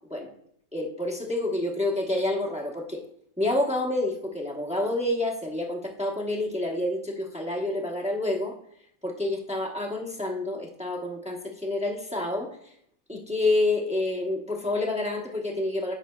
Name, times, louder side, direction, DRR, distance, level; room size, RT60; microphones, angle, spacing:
voice 1, 0.7-3.0 3.4-8.5 9.0-12.5 13.1-16.0, left 2 dB, 5° right, -1 dB, 0.7 m, -28 dB
11.0 x 5.8 x 2.3 m, 0.68 s
omnidirectional pair, 1.5 m